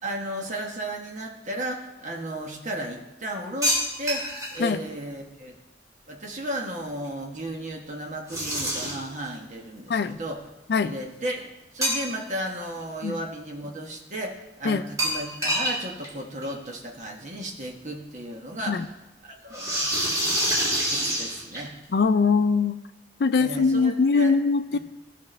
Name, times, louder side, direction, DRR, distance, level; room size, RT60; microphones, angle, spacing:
voice 1, 0.0-4.3 4.5-5.5 6.1-10.4 10.8-11.5 11.7-18.9 19.2-20.1 20.8-21.8 23.4-24.3 24.7-24.8, right 1 dB, 40° right, 1 dB, 1.2 m, -34 dB
sound 1, 3.6-4.6 8.3-9.1 11.8-12.4 12.8-12.9 15.0-16.1 16.4-16.5 17.7-17.8 19.5-21.8, equal, 20° right, 1.9 m, -26 dB
voice 2, 21.9-22.8 23.2-24.8, left 4 dB, 65° left, 10 dB, 0.4 m, -22 dB
14.0 x 5.8 x 3.3 m, 0.98 s
head